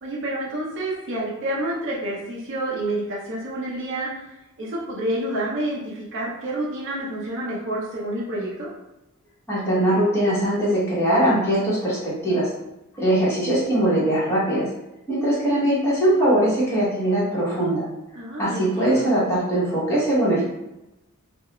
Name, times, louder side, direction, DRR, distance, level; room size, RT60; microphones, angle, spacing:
voice 1, 0.0-4.2 4.6-8.7 18.1-19.1, right 1 dB, 55° right, -5 dB, 0.5 m, -28 dB
voice 2, 9.5-12.5 13.0-14.7 15.1-17.8 18.4-20.5, right 1 dB, 10° left, -9 dB, 0.8 m, -21 dB
2.3 x 2.0 x 2.9 m, 0.96 s
head